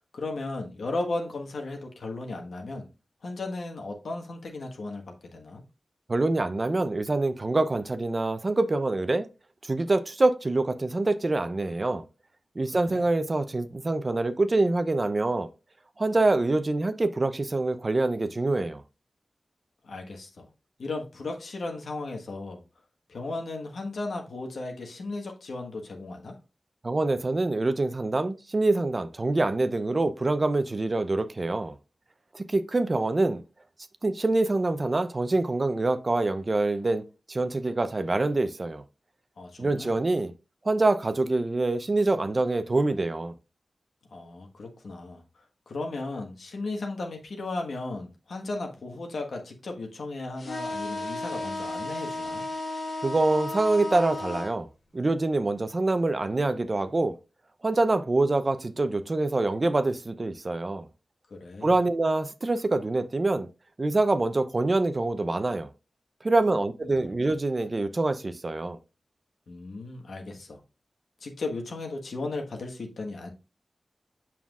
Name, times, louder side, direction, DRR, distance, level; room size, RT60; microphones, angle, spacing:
voice 1, 0.1-2.9 3.2-5.0 5.3-5.6 12.7-13.0 19.8-20.5 20.8-22.6 23.1-26.3 39.4-39.9 44.1-45.2 45.7-52.5 61.3-61.7 69.5-70.6 71.2-73.3, left 2 dB, 85° left, 1.3 m, -35 dB
voice 2, 6.1-9.3 9.6-12.0 12.6-15.5 16.0-18.8 26.8-31.8 32.3-33.4 34.0-37.0 37.3-38.8 39.6-40.3 40.6-43.3 53.0-54.7 54.9-57.2 57.6-60.9 61.6-63.5 63.8-65.7 66.2-68.8, right 2 dB, 40° right, 0.6 m, -25 dB
sound 1, 50.4-54.5, left 2 dB, 70° left, 1.3 m, -34 dB
7.2 x 5.7 x 2.3 m
wide cardioid pair, 70°, 0 cm